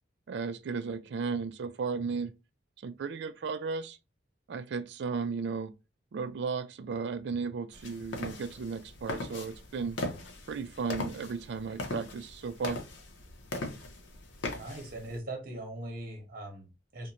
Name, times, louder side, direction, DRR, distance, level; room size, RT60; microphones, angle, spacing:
voice 1, 0.3-2.3 2.8-4.0 4.5-5.7 6.1-10.0 10.5-12.8, right 5 dB, 65° right, 0.3 m, -35 dB
sound 1, 7.7-15.2, left 2 dB, 85° left, 0.6 m, -39 dB
voice 2, 14.5-17.1, right 1 dB, 50° right, 0.9 m, -41 dB
2.5 x 2.1 x 2.8 m
head